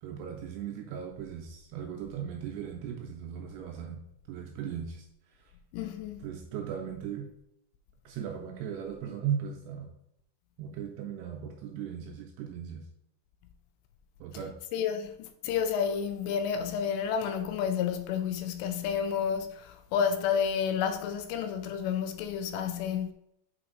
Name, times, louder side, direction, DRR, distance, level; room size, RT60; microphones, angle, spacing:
voice 1, 0.0-4.0 4.3-5.0 5.4-5.5 6.2-7.3 8.1-9.9 10.6-12.9 14.2-14.5, right 8 dB, 80° right, 2.7 m, -37 dB
voice 2, 5.7-6.3 14.7-23.1, left 7 dB, 80° left, 2.7 m, -30 dB
8.6 x 4.3 x 3.9 m
omnidirectional pair, 5.2 m